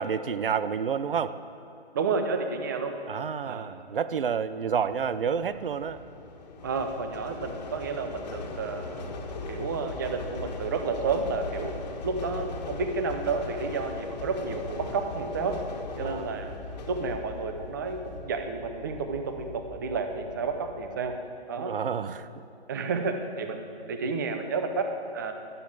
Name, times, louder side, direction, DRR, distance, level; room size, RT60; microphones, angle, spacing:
voice 1, 0.0-1.4 3.1-6.0 16.0-16.4 21.6-22.3 24.0-24.1, right 7 dB, 55° right, 14 dB, 0.8 m, -29 dB
voice 2, 1.9-3.0 3.4-3.7 6.6-11.8 12.0-15.6 16.0-16.5 16.9-21.1 21.5-21.7 22.7-25.3, right 4 dB, 20° right, 6 dB, 0.7 m, -31 dB
sound 1, 4.7-21.2, left 3 dB, 40° left, 1.8 m, -40 dB
13.5 x 12.0 x 8.7 m, 2.7 s
hypercardioid pair, 165°, 33 cm